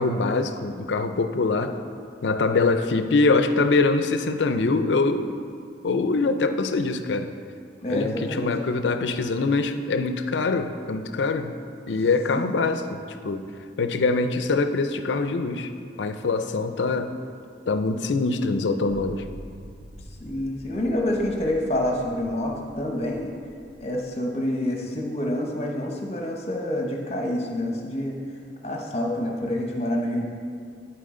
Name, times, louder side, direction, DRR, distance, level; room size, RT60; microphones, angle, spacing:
voice 1, 0.0-1.8 2.2-5.3 5.8-7.3 7.9-11.5 11.9-13.4 13.8-15.7 16.0-17.1 17.7-19.2, left 3 dB, 90° left, 8 dB, 0.5 m, -24 dB
voice 2, 7.8-8.5 12.3-12.5 20.2-23.3 23.8-28.2 28.6-30.2, left 1 dB, 35° left, 0 dB, 0.9 m, -27 dB
sound 1, 18.9-24.1, equal, 55° right, 0.7 m, -45 dB
12.0 x 4.6 x 3.7 m, 2.3 s
head